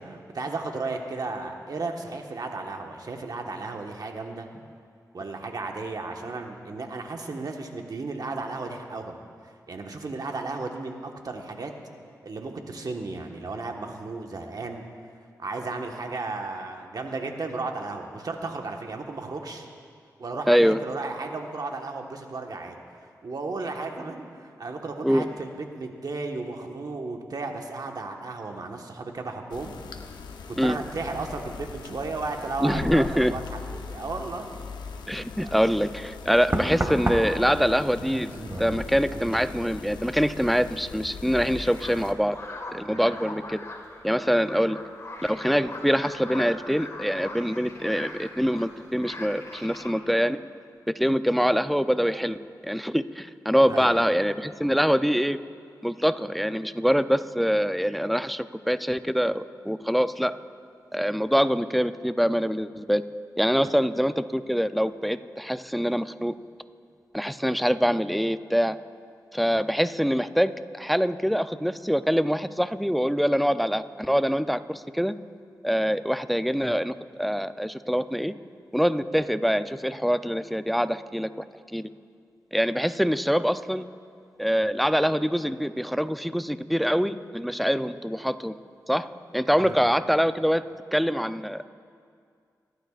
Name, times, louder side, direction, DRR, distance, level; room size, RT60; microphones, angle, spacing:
voice 1, 0.0-4.5 5.1-9.2 9.7-11.7 12.2-14.8 15.4-19.7 20.2-22.8 23.2-29.7 30.5-34.4 35.4-35.6 42.9-43.1 53.7-54.0 63.6-63.7 89.6-89.8, right 3 dB, 60° right, 3 dB, 1.4 m, -34 dB
voice 2, 20.5-20.8 25.0-25.3 30.6-30.8 32.6-33.4 35.1-38.3 38.6-42.4 42.7-43.6 44.0-44.8 45.2-50.4 51.0-55.4 55.8-60.3 60.9-63.0 63.4-66.3 67.1-68.8 69.3-75.1 75.6-78.3 78.7-81.4 81.7-81.9 82.5-83.9 84.4-88.5 88.9-89.1 89.3-90.6 90.9-91.7, equal, ahead, 12 dB, 0.5 m, -24 dB
sound 1, 29.5-42.1, left 5 dB, 90° left, 0.7 m, -40 dB
Knock, 35.5-35.7 36.5-40.0 40.3-40.7, right 1 dB, 25° right, 1.7 m, -32 dB
sound 2, 41.5-49.9, left 2 dB, 40° left, 1.8 m, -41 dB
29.5 x 11.5 x 2.5 m, 2.2 s
cardioid pair, 40°, 7 cm